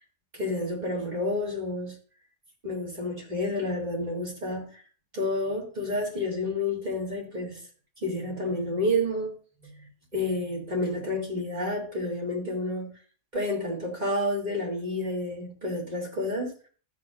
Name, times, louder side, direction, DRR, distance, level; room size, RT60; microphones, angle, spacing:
voice 1, 0.3-1.9 2.6-4.8 5.1-7.6 8.0-9.3 9.6-12.9 13.3-16.5, left 1 dB, 35° right, -3 dB, 3.1 m, -30 dB
13.5 x 8.3 x 2.6 m, 0.40 s
omnidirectional pair, 1.3 m